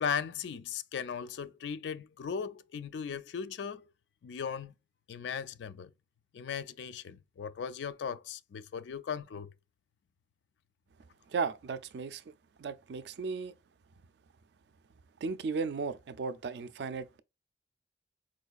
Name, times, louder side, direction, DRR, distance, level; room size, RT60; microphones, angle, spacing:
voice 1, 0.0-3.8 4.2-4.7 5.1-5.9 6.3-9.5, left 7 dB, 75° left, 0.3 m, -37 dB
voice 2, 11.3-12.2 12.6-13.5 15.2-17.2, right 5 dB, 65° right, 0.4 m, -35 dB
4.5 x 2.3 x 2.4 m
head